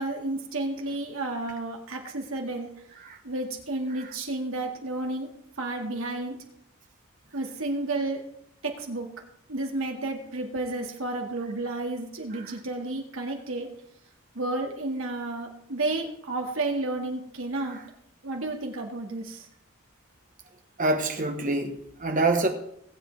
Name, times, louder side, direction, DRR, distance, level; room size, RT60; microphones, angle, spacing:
voice 1, 0.0-2.7 3.2-5.3 5.6-6.4 7.3-8.2 8.6-9.1 9.5-13.7 14.3-17.8 18.2-19.5, right 2 dB, 75° right, 2.1 m, -31 dB
voice 2, 20.8-22.5, right 2 dB, 40° right, 1.3 m, -27 dB
20.0 x 8.0 x 3.5 m
head